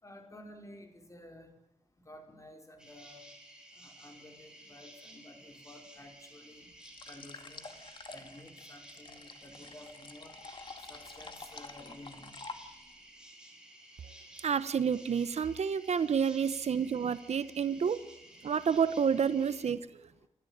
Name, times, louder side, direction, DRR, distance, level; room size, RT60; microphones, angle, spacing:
voice 1, 0.0-1.5 2.0-3.3 3.8-6.7 7.1-7.7 8.1-10.3 10.9-12.3, left 1 dB, 25° left, 3 dB, 4.8 m, -52 dB
sound 1, 2.8-19.7, right 1 dB, 5° right, 5.6 m, -54 dB
sound 2, 6.8-13.0, left 3 dB, 40° left, 2.2 m, -48 dB
voice 2, 14.4-18.0 18.4-19.8, right 7 dB, 65° right, 14 dB, 0.9 m, -29 dB
28.5 x 13.5 x 8.9 m, 0.90 s
wide cardioid pair, 95°, 12 cm